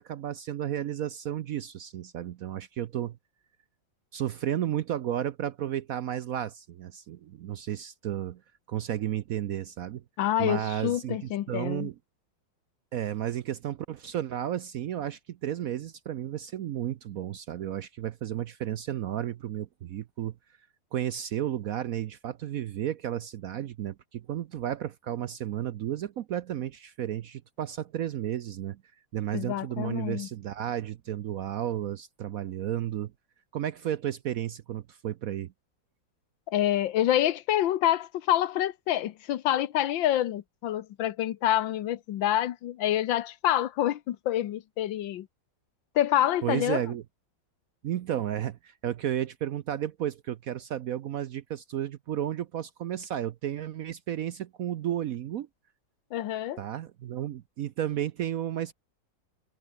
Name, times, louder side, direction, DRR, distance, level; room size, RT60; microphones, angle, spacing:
voice 1, 0.0-3.2 4.1-8.4 8.7-10.0 10.4-12.0 12.9-20.4 20.9-28.8 29.1-33.1 33.5-35.5 46.4-47.0 47.8-55.5 56.6-58.7, right 11 dB, 65° right, 0.9 m, -33 dB
voice 2, 10.2-11.9 29.3-30.3 36.5-45.3 45.9-46.8 56.1-56.6, left 12 dB, 80° left, 1.6 m, -27 dB
omnidirectional pair, 2.0 m